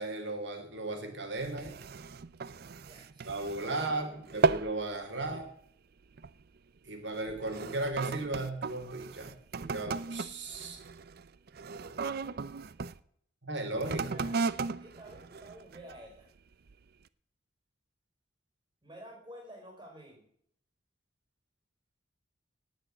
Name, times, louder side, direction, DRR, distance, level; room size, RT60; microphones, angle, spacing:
voice 1, 0.0-1.8 3.2-5.5 6.8-10.8 13.4-14.2, right 2 dB, 70° right, 5 dB, 3.3 m, -36 dB
sound 1, 1.4-4.0 4.3-4.8 5.2-5.5 6.2-6.4 7.1-13.0 13.7-16.1 16.7-16.8, right 4 dB, 55° right, 0.5 m, -35 dB
voice 2, 2.8-4.5 11.8-12.6 14.0-14.5 14.8-16.3 18.8-20.3, equal, 20° right, 1 dB, 5.3 m, -52 dB
18.0 x 6.5 x 8.1 m, 0.64 s
head